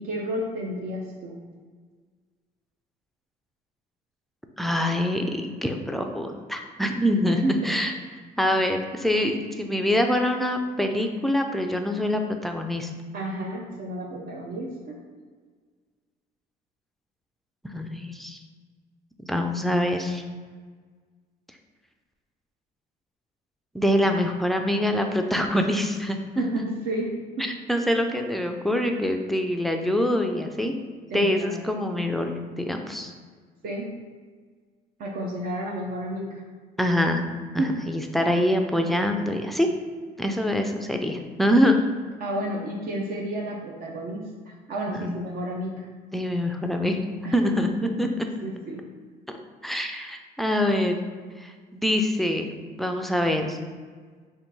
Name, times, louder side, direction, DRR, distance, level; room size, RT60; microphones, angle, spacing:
voice 1, 0.0-1.4 7.3-7.8 13.1-15.0 26.4-27.1 27.4-27.5 31.1-31.6 33.6-33.9 35.0-36.4 37.6-37.8 41.6-41.7 42.2-45.9 47.2-47.5 47.8-48.1 48.4-48.8, right 1 dB, 60° right, -1 dB, 0.6 m, -31 dB
voice 2, 4.6-7.4 7.6-7.9 8.4-12.9 17.6-18.4 19.2-20.2 23.7-26.2 27.4-30.7 31.1-33.1 36.8-37.3 37.5-39.7 40.2-41.7 44.9-45.4 46.1-47.0 47.3-48.1 49.6-51.0 51.4-53.6, left 1 dB, ahead, 4 dB, 0.3 m, -25 dB
3.6 x 2.6 x 4.0 m, 1.5 s
cardioid pair, 110°, 17 cm